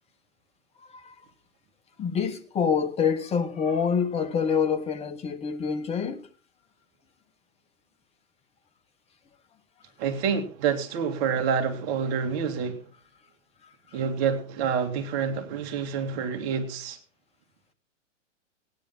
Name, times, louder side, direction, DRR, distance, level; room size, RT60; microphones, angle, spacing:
voice 1, 2.0-6.3 13.9-14.0, left 6 dB, 15° left, 1.2 m, -26 dB
voice 2, 10.0-12.8 13.9-17.0, right 6 dB, 40° right, 2.4 m, -27 dB
16.5 x 10.0 x 4.4 m
hypercardioid pair, 125°, 37 cm